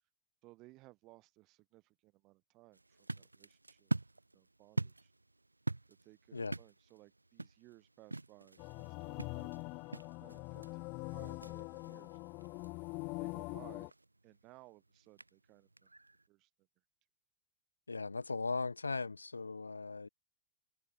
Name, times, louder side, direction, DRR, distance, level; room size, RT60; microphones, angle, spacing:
voice 1, 0.4-3.9 4.3-5.1 5.9-9.8 10.2-12.2 13.2-13.9 14.2-15.9 16.3-16.5, right 20 dB, 40° right, 5.4 m, -61 dB
sound 1, 2.7-16.3, right 2 dB, 85° right, 1.8 m, -45 dB
sound 2, 8.6-13.9, left 28 dB, 45° left, 0.7 m, -43 dB
voice 2, 17.9-20.1, left 3 dB, 80° left, 2.1 m, -38 dB
figure-of-eight pair, 90°, 0 cm